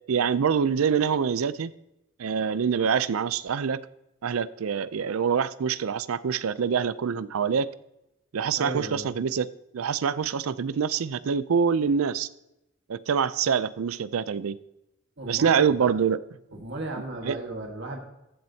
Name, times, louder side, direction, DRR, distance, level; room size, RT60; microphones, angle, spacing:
voice 1, 0.1-1.7 2.2-3.8 4.2-7.7 8.3-9.5 9.7-12.3 12.9-14.6 15.3-16.2 17.3-17.4, right 6 dB, 90° right, 0.4 m, -25 dB
voice 2, 8.6-9.1 15.2-16.0 16.5-18.0, right 2 dB, 60° right, 1.6 m, -35 dB
14.5 x 7.6 x 2.8 m
head